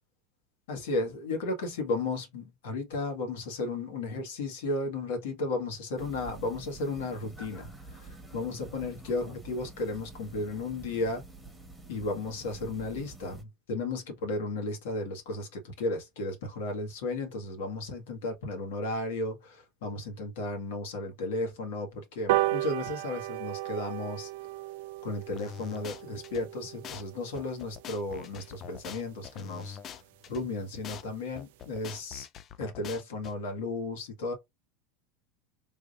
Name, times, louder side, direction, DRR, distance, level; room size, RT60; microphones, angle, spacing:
voice 1, 0.7-11.2 11.9-24.3 25.0-29.8 30.3-32.3 32.6-34.3, left 2 dB, 80° left, 1.7 m, -34 dB
sound 1, 6.0-13.4, right 3 dB, 5° right, 1.2 m, -48 dB
sound 2, 22.3-29.0 29.5-29.6 29.9-30.0 30.3-30.4 30.6-30.7 31.0-31.3 31.7-31.8, right 17 dB, 75° right, 0.3 m, -34 dB
sound 3, 25.4-26.4 26.8-27.0 27.3-30.4 30.8-31.0 31.3-33.3, left 8 dB, 35° left, 0.4 m, -43 dB
3.5 x 2.8 x 2.5 m
supercardioid pair, 120°, 0 cm